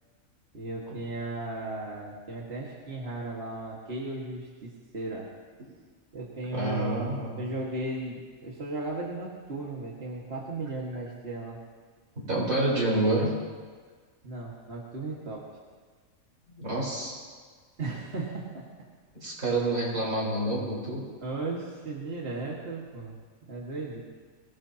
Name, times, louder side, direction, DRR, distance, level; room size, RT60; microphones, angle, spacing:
voice 1, 0.5-5.3 6.1-11.6 14.2-15.5 17.8-18.6 21.2-23.2 23.5-24.0, right 2 dB, 45° right, -4 dB, 2.1 m, -36 dB
voice 2, 6.5-7.4 12.3-13.3 16.5-17.2 19.1-21.0, right 2 dB, 70° right, -5 dB, 5.1 m, -28 dB
23.5 x 17.0 x 2.9 m, 1.5 s
omnidirectional pair, 1.5 m